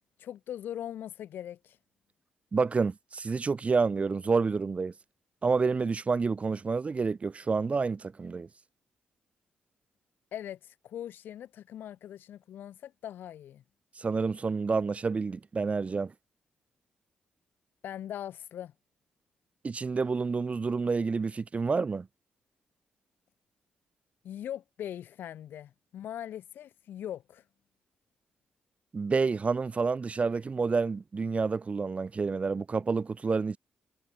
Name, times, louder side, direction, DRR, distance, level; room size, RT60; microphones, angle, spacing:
voice 1, 0.2-1.8 10.3-13.6 17.8-18.7 24.2-27.4, left 11 dB, 80° left, 1.8 m, -41 dB
voice 2, 2.5-4.9 5.4-8.5 14.0-16.1 19.6-22.1 28.9-33.6, right 4 dB, 40° right, 0.6 m, -29 dB
supercardioid pair, 55°, 3 cm